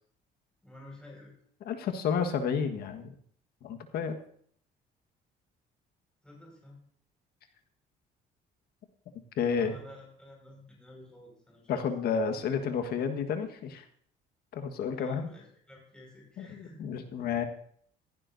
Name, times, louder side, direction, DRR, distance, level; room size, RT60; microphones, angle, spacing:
voice 1, 0.6-1.3 6.2-6.8 9.6-12.1 14.9-16.8, left 1 dB, 5° left, -3 dB, 5.4 m, -52 dB
voice 2, 1.6-3.1 3.6-4.2 9.4-9.7 11.7-13.8 14.5-15.3 16.4-17.4, left 6 dB, 70° left, 7 dB, 1.5 m, -31 dB
15.0 x 15.0 x 2.7 m, 0.62 s
cardioid pair, 110°, 17 cm